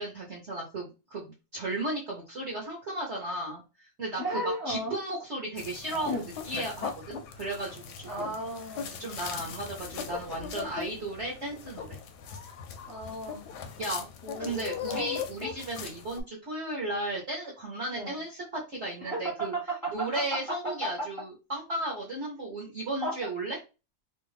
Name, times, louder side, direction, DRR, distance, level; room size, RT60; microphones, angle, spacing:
voice 1, 0.0-6.1 6.4-8.4 9.0-12.0 13.8-14.1 14.4-19.5 19.9-23.6, right 1 dB, 45° right, -4 dB, 1.0 m, -35 dB
voice 2, 4.2-4.9 6.0-6.2 8.0-8.9 12.9-13.4 14.2-15.1 17.9-18.2 19.0-20.4 20.6-20.7 23.0-23.2, right 1 dB, 15° left, -4 dB, 0.8 m, -34 dB
sound 1, 5.6-16.2, left 7 dB, 70° left, 1.0 m, -39 dB
3.2 x 2.5 x 3.2 m, 0.29 s
omnidirectional pair, 2.1 m